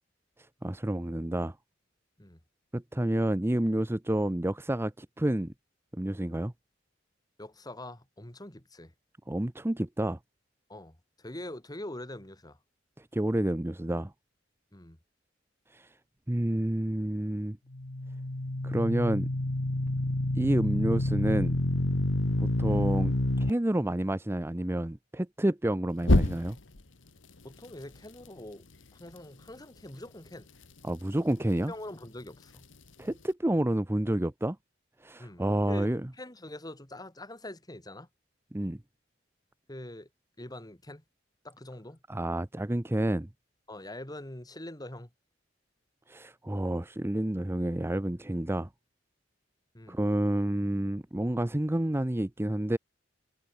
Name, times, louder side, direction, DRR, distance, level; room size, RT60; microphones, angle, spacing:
voice 1, 0.6-1.5 2.7-5.5 6.0-6.5 9.3-10.2 13.1-14.1 15.7-15.9 16.3-17.6 18.6-19.3 20.3-21.6 22.4-26.6 30.8-31.7 33.0-34.6 35.0-36.0 38.5-38.8 42.1-43.3 46.1-48.7 49.9-52.8, right 1 dB, 15° right, 0.7 m, -29 dB
voice 2, 7.4-8.9 10.7-12.6 14.7-15.0 27.4-28.6 29.0-30.5 31.7-32.6 35.2-38.1 39.7-40.1 40.4-41.0 41.4-42.0 43.7-45.1 49.7-50.0, left 1 dB, 20° left, 2.9 m, -44 dB
sound 1, 17.7-23.5 26.0-26.8, left 1 dB, 90° left, 1.8 m, -27 dB
head